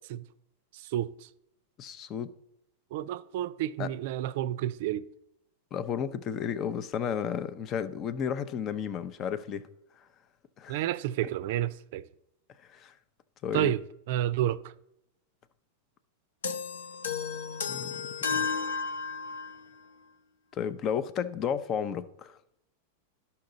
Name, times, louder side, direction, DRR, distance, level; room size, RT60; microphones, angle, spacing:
voice 1, 0.7-1.3 2.9-5.1 10.7-12.1 13.5-13.8 14.1-14.6, right 13 dB, 60° right, 0.4 m, -30 dB
voice 2, 1.8-2.3 3.8-3.9 5.7-9.6 10.6-10.8 12.7-12.9 13.4-13.7 17.7-18.5 20.5-22.4, left 8 dB, 35° left, 0.6 m, -33 dB
sound 1, 16.4-19.6, left 5 dB, 85° left, 0.7 m, -33 dB
11.5 x 5.7 x 3.9 m
hypercardioid pair, 115°, 0 cm